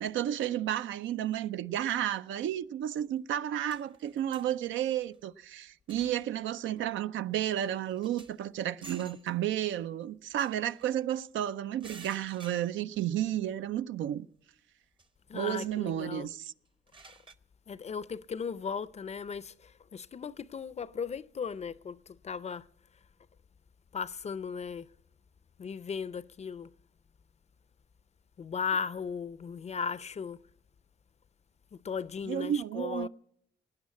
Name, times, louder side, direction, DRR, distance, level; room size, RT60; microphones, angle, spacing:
voice 1, 0.0-14.3 15.3-16.5 32.3-33.1, right 11 dB, 75° right, 0.5 m, -32 dB
sound 1, 3.2-3.3 3.7-4.5 5.0-5.2 5.9-6.3 6.7-6.9 7.3-7.4 7.6-8.4 8.8-9.3 10.3-11.2 11.8-13.1 13.5-13.6 15.0-15.1 16.7-17.4, right 3 dB, 25° right, 0.7 m, -53 dB
voice 2, 15.3-16.3 17.7-22.7 23.9-24.9 25.6-26.7 28.4-30.4 31.7-33.1, left 6 dB, 35° left, 0.5 m, -37 dB
17.5 x 9.7 x 8.4 m
cardioid pair, 90°, 20 cm